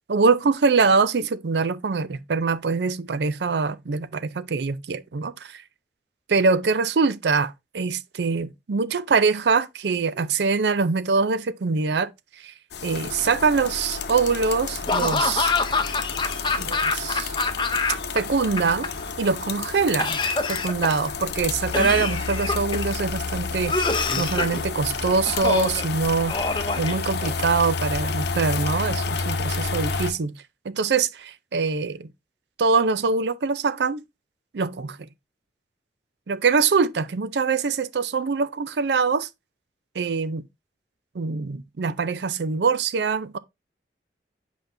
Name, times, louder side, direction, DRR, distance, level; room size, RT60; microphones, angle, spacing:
voice 1, 0.1-5.6 6.3-12.1 12.4-12.5 12.8-15.5 16.6-17.3 18.1-18.9 19.2-20.2 20.5-26.3 26.8-30.3 30.7-32.1 32.6-34.0 34.5-35.0 36.3-39.3 40.0-40.4 41.1-43.4, right 4 dB, 75° right, 0.5 m, -23 dB
sound 1, 12.7-30.1, left 4 dB, 75° left, 0.7 m, -30 dB
Laughter / Cough, 14.9-18.2 18.4-19.3 20.0-21.1 21.7-22.9 23.7-24.6 25.3-25.8 26.3-27.5, left 3 dB, 25° left, 0.7 m, -26 dB
8.0 x 5.1 x 2.6 m
head